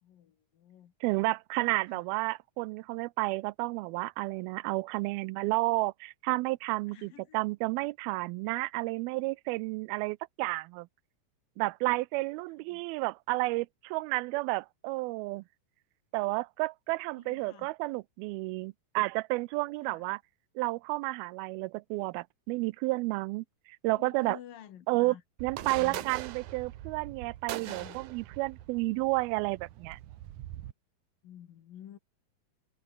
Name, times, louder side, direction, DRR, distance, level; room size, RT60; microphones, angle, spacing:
voice 1, 0.0-0.9 1.7-2.0 6.9-7.4 12.7-12.8 17.2-17.7 19.8-20.0 23.9-25.2 25.6-26.0 27.6-28.0 31.2-32.0, left 10 dB, 70° left, 3.5 m, -50 dB
voice 2, 1.0-10.9 11.6-15.4 16.1-20.2 20.6-23.5 23.8-24.4 24.9-30.0, right 22 dB, 90° right, 2.4 m, -31 dB
sound 1, 25.4-30.7, right 13 dB, 65° right, 2.2 m, -42 dB
omnidirectional pair, 4.3 m